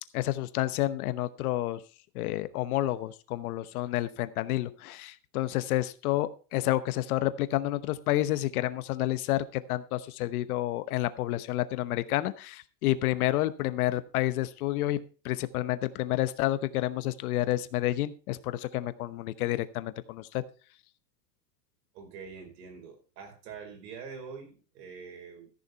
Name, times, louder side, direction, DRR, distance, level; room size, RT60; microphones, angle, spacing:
voice 1, 0.1-1.8 2.1-15.0 15.2-20.4, left 15 dB, 60° left, 14 dB, 1.0 m, -29 dB
voice 2, 21.9-25.5, right 5 dB, 80° right, 3 dB, 5.0 m, -45 dB
14.0 x 6.8 x 4.5 m, 0.36 s
supercardioid pair, 165°, 49 cm